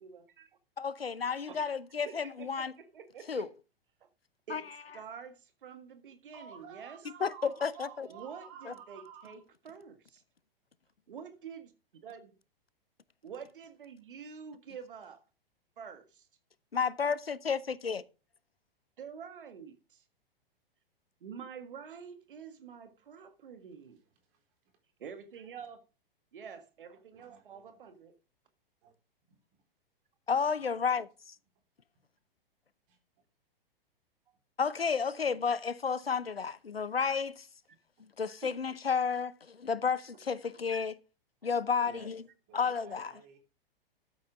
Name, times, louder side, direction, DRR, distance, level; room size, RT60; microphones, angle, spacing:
voice 1, 0.0-0.5 1.5-1.7 2.0-3.5 4.0-4.1 4.5-4.7 4.9-7.0 8.1-10.2 11.1-12.3 13.2-15.2 15.8-16.3 19.0-20.0 21.2-24.0 25.0-25.8 26.3-28.1 38.4-38.5, right 7 dB, 60° right, 1.7 m, -47 dB
voice 2, 0.8-2.7 3.3-3.5 4.5-4.6 7.2-8.1 8.7-8.8 16.7-18.0 30.3-31.3 34.6-37.5 38.2-41.0 41.4-42.2 42.5-43.1, left 6 dB, 80° left, 0.8 m, -32 dB
voice 3, 6.3-9.4 23.1-23.2 24.3-24.4 26.9-27.9 28.8-28.9 29.3-29.4 32.9-33.0 38.0-38.1 41.8-42.1 42.5-43.4, right 7 dB, 35° right, 4.2 m, -52 dB
13.0 x 8.6 x 3.6 m
figure-of-eight pair, 110°, 29 cm